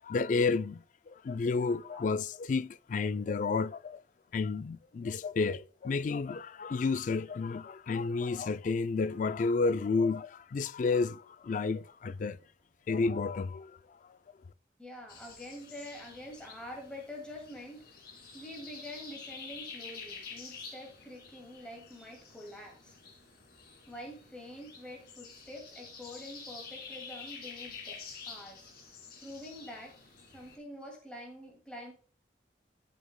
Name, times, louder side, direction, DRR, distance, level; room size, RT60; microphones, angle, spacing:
voice 1, 0.0-4.0 4.3-12.4 12.9-13.8, left 4 dB, 45° left, 0.3 m, -31 dB
voice 2, 14.8-17.9 18.3-23.0 23.9-28.7 29.2-30.0 30.3-31.9, left 1 dB, 5° left, 2.2 m, -46 dB
sound 1, 15.1-30.6, left 5 dB, 60° left, 2.6 m, -48 dB
12.5 x 6.4 x 2.2 m
head